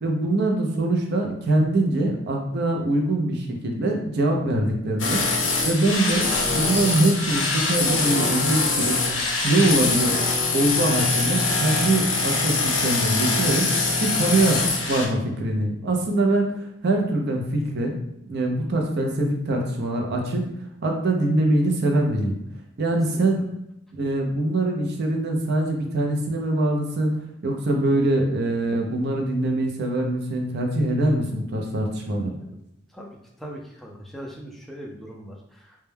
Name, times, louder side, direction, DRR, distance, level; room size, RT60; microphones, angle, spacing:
voice 1, 0.0-6.3 6.5-10.2 10.5-13.7 14.0-14.6 14.9-17.9 18.2-20.5 20.8-22.4 22.8-23.4 23.9-32.4, right 2 dB, 55° right, 1 dB, 0.5 m, -23 dB
sound 1, 5.0-15.1, left 3 dB, 65° left, 0.5 m, -23 dB
voice 2, 32.9-35.8, equal, ahead, -1 dB, 0.3 m, -40 dB
2.2 x 2.1 x 3.2 m, 0.81 s
head